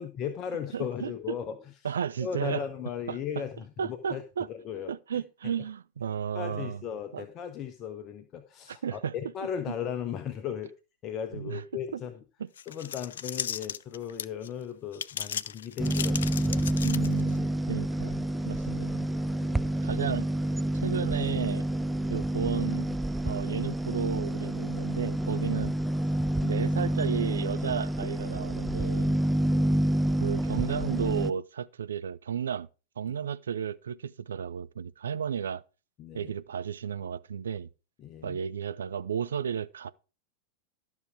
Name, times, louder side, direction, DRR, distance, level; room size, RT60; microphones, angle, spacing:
voice 1, 0.0-1.7 2.2-4.2 4.5-4.9 6.3-10.7 11.0-12.1 12.7-16.6 19.4-19.7 29.4-29.8 36.0-36.3 38.0-38.4, left 8 dB, 30° left, 0.9 m, -37 dB
voice 2, 0.7-1.4 1.8-2.6 3.1-3.2 3.8-4.5 4.9-6.8 7.1-7.3 8.7-9.1 11.4-11.6 11.9-12.0 12.4-12.5 16.8-18.2 18.5-19.0 19.8-20.3 20.7-21.6 22.1-23.0 23.2-25.7 26.4-29.2 30.2-32.7 33.0-35.6 36.1-37.7 38.2-39.9, right 8 dB, 65° right, 0.4 m, -33 dB
sound 1, 12.6-14.5 14.9-17.4, left 9 dB, 65° left, 0.4 m, -35 dB
sound 2, 15.8-31.3, right 1 dB, 5° right, 0.4 m, -28 dB
12.5 x 6.1 x 4.8 m
figure-of-eight pair, 90°, 0 cm